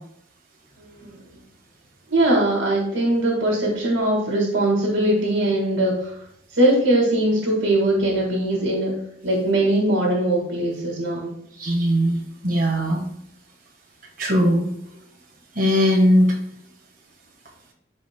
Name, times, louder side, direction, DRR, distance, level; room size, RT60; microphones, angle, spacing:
voice 1, 0.8-1.2 2.1-6.2 6.5-8.9 9.2-11.3, right 1 dB, 85° right, -2 dB, 2.0 m, -21 dB
voice 2, 11.6-13.0 14.2-14.7 15.5-16.3, equal, 50° right, -1 dB, 1.5 m, -19 dB
12.5 x 4.6 x 2.2 m, 0.72 s
head